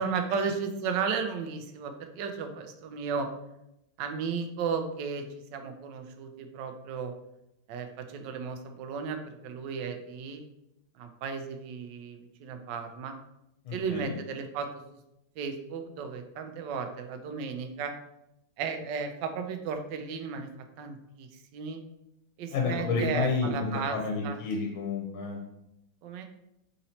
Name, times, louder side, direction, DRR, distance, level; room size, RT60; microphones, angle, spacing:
voice 1, 0.0-3.3 4.0-5.2 5.5-7.1 7.7-10.5 11.0-13.1 13.7-14.7 15.4-17.9 18.6-20.5 20.8-21.3 21.5-21.8 22.4-24.0 24.2-24.4 26.0-26.2, right 5 dB, 75° right, 6 dB, 1.1 m, -34 dB
voice 2, 13.6-14.2 22.5-25.4, left 4 dB, 85° left, 0 dB, 1.5 m, -30 dB
3.9 x 2.8 x 4.2 m, 0.85 s
omnidirectional pair, 2.2 m